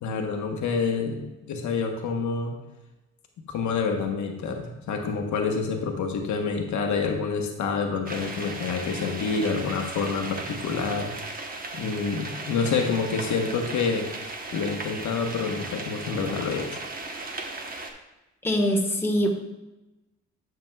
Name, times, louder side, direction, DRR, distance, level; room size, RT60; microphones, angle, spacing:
voice 1, 0.0-2.5 3.5-11.1 11.7-14.1 14.5-16.8, left 5 dB, 70° left, 3 dB, 1.0 m, -27 dB
sound 1, 8.1-17.9, right 2 dB, 30° right, 1.0 m, -36 dB
voice 2, 18.4-19.3, equal, 10° left, 0 dB, 1.1 m, -23 dB
10.5 x 5.9 x 2.3 m, 1.0 s
cardioid pair, 90°, 30 cm